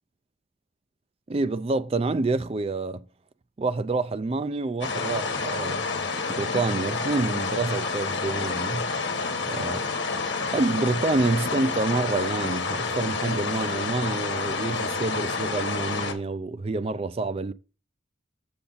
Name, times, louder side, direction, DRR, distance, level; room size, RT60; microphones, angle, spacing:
voice 1, 1.3-3.0 3.6-5.9 6.3-8.9 9.4-9.8 10.4-17.5, right 3 dB, 30° right, 0.4 m, -27 dB
sound 1, 4.8-16.1, left 4 dB, 60° left, 1.3 m, -29 dB
7.0 x 6.9 x 4.0 m
head